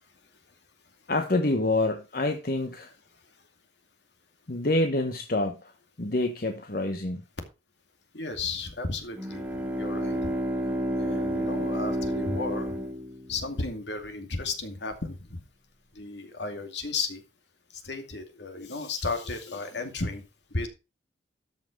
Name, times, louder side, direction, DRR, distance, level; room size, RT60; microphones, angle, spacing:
voice 1, 1.1-2.9 4.5-5.7 6.0-7.2 18.6-18.7, left 2 dB, 50° left, 5 dB, 1.2 m, -27 dB
voice 2, 8.1-10.3 11.0-12.8 13.3-15.4 15.9-17.2 17.7-20.2 20.5-20.7, left 3 dB, 70° left, 6 dB, 2.4 m, -34 dB
Bowed string instrument, 9.1-13.7, equal, 10° right, 1.5 m, -30 dB
13.5 x 5.9 x 5.1 m, 0.29 s
head